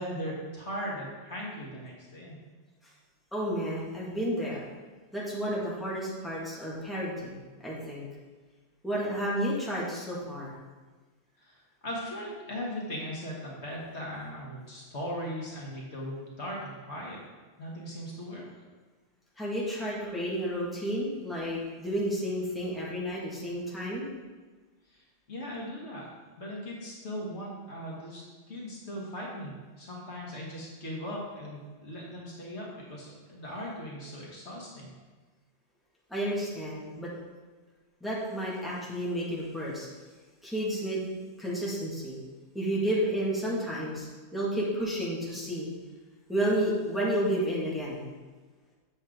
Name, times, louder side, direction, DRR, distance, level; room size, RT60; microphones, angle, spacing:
voice 1, 0.0-2.5 11.4-17.2 17.6-18.4 24.9-26.1 26.4-34.9, equal, 70° left, -4 dB, 2.0 m, -39 dB
voice 2, 3.3-4.6 5.1-7.4 7.6-8.0 8.8-10.6 19.4-24.1 36.1-37.1 38.0-39.9 40.4-41.1 41.4-42.2 42.5-45.7 46.3-48.1, equal, ahead, -6 dB, 1.9 m, -31 dB
7.6 x 7.3 x 3.8 m, 1.3 s
omnidirectional pair, 1.2 m